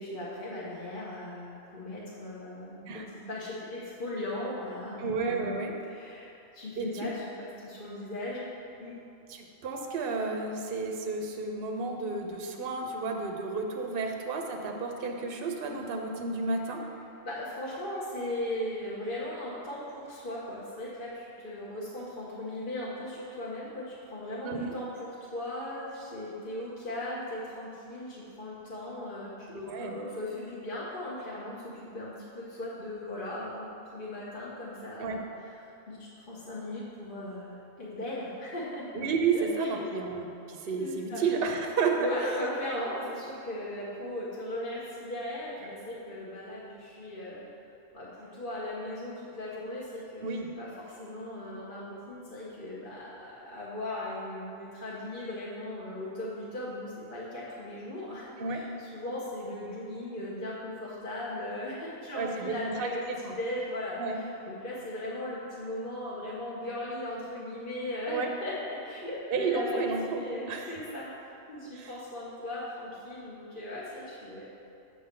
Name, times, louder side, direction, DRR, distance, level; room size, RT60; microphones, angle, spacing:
voice 1, 0.0-5.6 5.9-8.5 8.8-8.9 17.2-24.9 25.2-33.7 33.9-35.2 35.6-38.9 39.3-40.0 40.8-41.2 42.0-47.4 47.9-74.7, left 1 dB, 45° left, -7 dB, 1.2 m, -38 dB
voice 2, 5.0-5.7 6.8-6.9 9.3-16.8 24.4-24.7 29.5-29.9 35.0-35.2 38.9-42.0 50.2-50.5 58.4-58.6 62.1-63.3 64.0-64.2 68.1-68.3 69.3-70.2 70.5-70.8 71.7-71.9, right 4 dB, 55° right, 2 dB, 0.8 m, -31 dB
8.2 x 3.9 x 6.6 m, 2.7 s
omnidirectional pair, 1.3 m